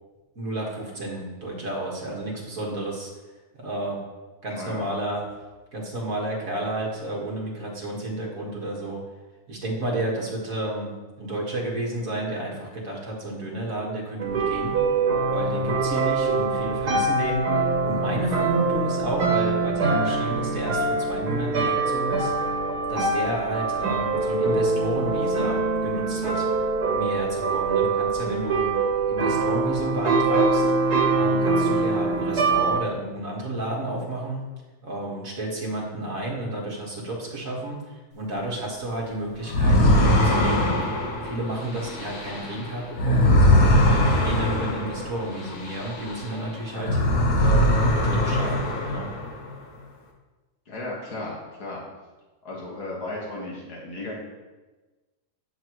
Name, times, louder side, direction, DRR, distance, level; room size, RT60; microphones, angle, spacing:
voice 1, 0.4-3.1 3.5-4.0 4.4-5.2 5.7-9.0 9.5-14.8 15.3-22.6 22.9-26.5 26.9-28.7 29.1-30.6 31.1-34.4 34.8-40.8 41.2-43.6 44.1-47.0 47.4-49.1, right 1 dB, 60° right, -2 dB, 2.2 m, -31 dB
voice 2, 4.5-4.8 50.7-51.8 52.4-54.1, left 2 dB, 90° left, -4 dB, 2.2 m, -35 dB
sound 1, 14.2-32.8, right 3 dB, 90° right, 1.6 m, -24 dB
sound 2, 39.5-46.4 46.7-49.4, left 1 dB, 70° left, 1.7 m, -21 dB
10.5 x 7.2 x 3.1 m, 1.2 s
omnidirectional pair, 1.6 m